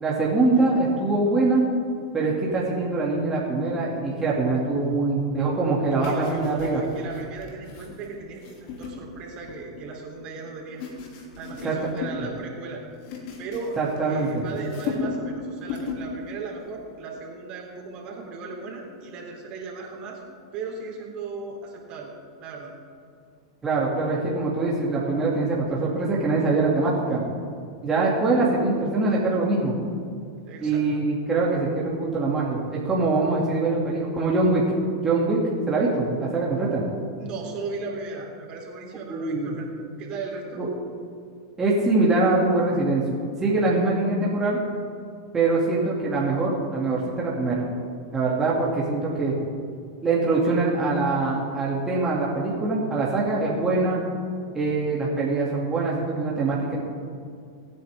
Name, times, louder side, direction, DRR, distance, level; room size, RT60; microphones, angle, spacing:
voice 1, 0.0-1.6 2.1-6.8 11.6-11.7 13.8-14.4 23.6-27.2 27.8-29.7 30.6-34.6 35.0-35.4 35.7-36.8 39.1-39.6 40.6-40.7 41.6-43.0 43.4-44.6 45.3-47.6 48.1-49.4 50.0-54.0 54.5-56.8, right 3 dB, 20° right, -5 dB, 2.7 m, -23 dB
sound 1, 6.0-9.9 10.4-12.3 12.6-14.3 14.6-15.3 15.6-16.1 16.5-16.7, left 5 dB, 50° left, 3.0 m, -36 dB
voice 2, 6.1-10.8 11.4-12.8 13.4-13.8 14.1-20.2 20.5-22.1 22.4-22.7 30.5-30.9 37.2-40.7, right 4 dB, 45° right, -1 dB, 3.6 m, -37 dB
24.0 x 9.4 x 3.7 m, 2.4 s
hypercardioid pair, 110°, 2 cm